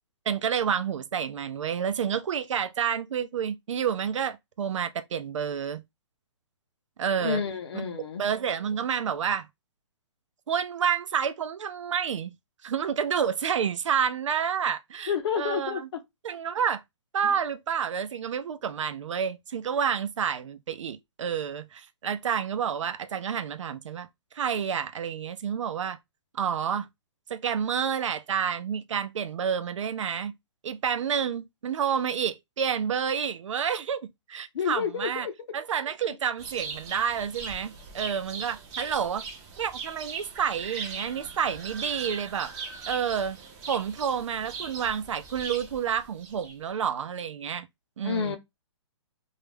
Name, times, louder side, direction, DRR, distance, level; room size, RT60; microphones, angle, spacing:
voice 1, 0.3-5.8 7.0-7.4 7.7-7.8 8.2-9.5 10.5-12.3 12.6-15.9 16.2-16.8 17.1-24.1 24.3-26.0 26.3-26.9 27.3-30.3 30.6-34.0 34.3-35.3 35.5-39.2 39.6-42.5 42.9-43.4 43.7-47.7 48.0-48.4, right 7 dB, 80° right, 0.5 m, -29 dB
voice 2, 7.2-8.2 15.1-16.0 34.5-35.3 48.0-48.4, left 7 dB, 60° left, 0.7 m, -29 dB
sound 1, 36.4-46.8, right 4 dB, 20° right, 0.5 m, -40 dB
2.4 x 2.1 x 3.2 m
hypercardioid pair, 150°, 16 cm